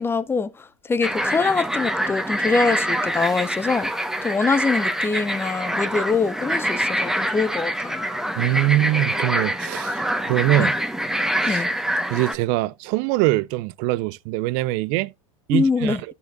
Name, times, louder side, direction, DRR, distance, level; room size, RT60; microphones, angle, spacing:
voice 1, 0.0-3.9 4.2-8.1 10.6-10.7 11.5-11.7 15.5-16.0, left 4 dB, 15° left, 0.8 m, -24 dB
sound 1, 1.0-12.3, equal, 5° right, 1.1 m, -25 dB
voice 2, 8.4-10.8 11.4-11.6 12.1-15.1 15.5-16.0, right 17 dB, 50° right, 0.5 m, -23 dB
12.5 x 6.7 x 2.4 m
hypercardioid pair, 100°, 17 cm